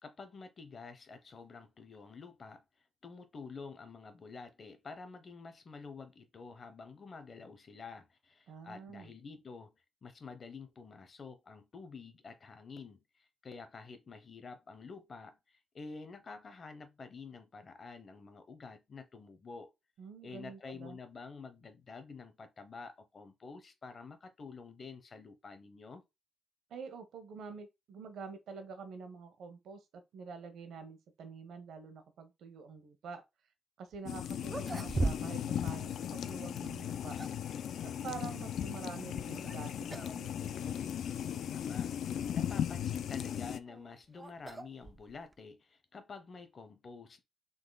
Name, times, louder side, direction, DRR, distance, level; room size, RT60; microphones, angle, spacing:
voice 1, 0.0-2.6 3.0-9.7 10.0-19.7 20.2-26.0 41.5-41.9 42.3-47.2, left 4 dB, 35° left, 0.7 m, -49 dB
voice 2, 8.5-9.1 20.0-21.0 26.7-33.2 33.8-37.2 37.8-40.9, right 5 dB, 75° right, 1.1 m, -47 dB
sound 1, 33.9-34.0 34.4-35.5 35.8-35.9 36.8-37.5 39.3-39.6 39.9-40.2 40.5-40.6 41.4-41.5 43.3-45.4, right 3 dB, 20° right, 0.3 m, -38 dB
sound 2, 34.0-43.6, left 9 dB, 70° left, 0.4 m, -37 dB
3.9 x 3.0 x 4.0 m
cardioid pair, 145°, 0 cm